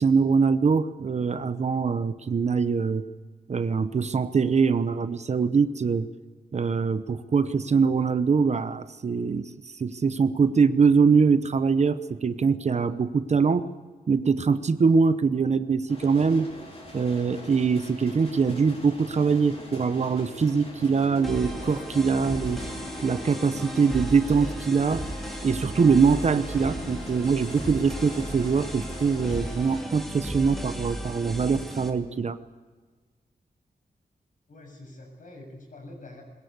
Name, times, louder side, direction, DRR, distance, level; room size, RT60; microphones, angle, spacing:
voice 1, 0.0-3.0 3.5-6.1 6.5-9.5 9.8-13.7 14.1-16.5 16.9-22.6 23.0-25.0 25.4-32.4, right 5 dB, 45° right, 12 dB, 0.9 m, -23 dB
sound 1, 15.9-29.8, left 1 dB, 40° left, 4.8 m, -42 dB
sound 2, 20.9-28.7, right 5 dB, 85° right, 2.8 m, -48 dB
sound 3, 21.2-31.9, equal, ahead, 2.5 m, -36 dB
voice 2, 34.5-36.2, left 1 dB, 55° left, 1 dB, 7.4 m, -45 dB
21.5 x 21.0 x 8.3 m, 1.4 s
wide cardioid pair, 160°, 16 cm